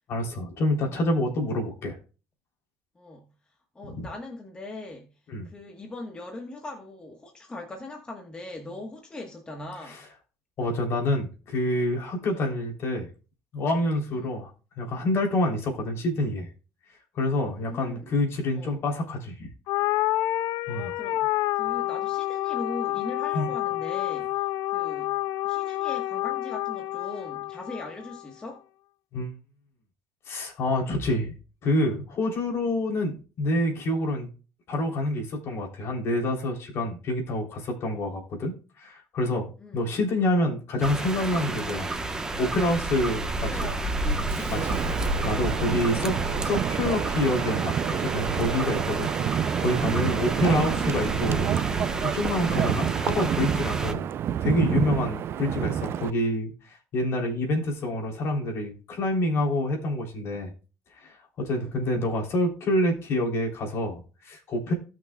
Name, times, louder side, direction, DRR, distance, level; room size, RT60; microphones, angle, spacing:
voice 1, 0.1-2.0 3.9-4.1 5.3-5.5 9.9-10.0 10.6-13.1 13.5-14.5 14.8-16.5 17.1-19.5 20.7-20.9 23.3-23.5 29.1-29.3 30.3-31.3 31.6-34.3 34.7-41.9 42.4-43.7 44.5-44.8 45.2-46.1 46.4-49.1 49.6-51.4 52.0-54.1 54.4-60.5 61.0-64.7, left 1 dB, 50° left, 3.3 m, -27 dB
voice 2, 2.9-3.3 3.7-5.1 5.4-10.1 12.3-12.5 14.1-14.3 17.6-18.1 18.5-18.8 20.7-21.3 21.5-25.2 25.4-28.7 39.6-39.8 43.5-45.2 45.8-46.2 54.0-54.2 55.2-55.4 61.5-61.7, left 2 dB, 15° left, 1.3 m, -40 dB
sound 1, 19.7-28.2, left 16 dB, 75° left, 0.4 m, -28 dB
sound 2, 40.8-53.9, right 2 dB, 10° right, 1.0 m, -30 dB
Wind, 44.3-56.1, right 9 dB, 45° right, 0.4 m, -29 dB
17.0 x 6.1 x 2.3 m
cardioid pair, 140°, 6 cm